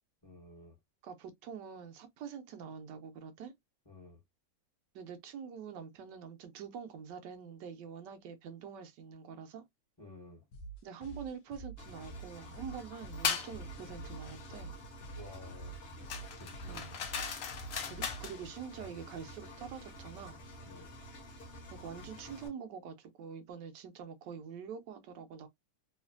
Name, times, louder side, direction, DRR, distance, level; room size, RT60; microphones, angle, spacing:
voice 1, 0.2-0.8 3.9-4.2 10.0-10.4 15.2-15.8 16.1-16.9 20.7-20.9, left 2 dB, 20° left, 0.7 m, -52 dB
voice 2, 1.0-3.5 4.9-9.6 10.8-14.7 16.7-17.0 17.9-20.4 21.8-25.5, right 7 dB, 85° right, 1.2 m, -45 dB
sound 1, 10.5-18.5, right 3 dB, 70° left, 1.0 m, -47 dB
Engine, 11.8-22.5, equal, 45° left, 1.0 m, -50 dB
sound 2, 13.2-13.5 16.1-18.4, left 7 dB, 90° left, 0.5 m, -37 dB
3.1 x 2.4 x 2.4 m
omnidirectional pair, 1.9 m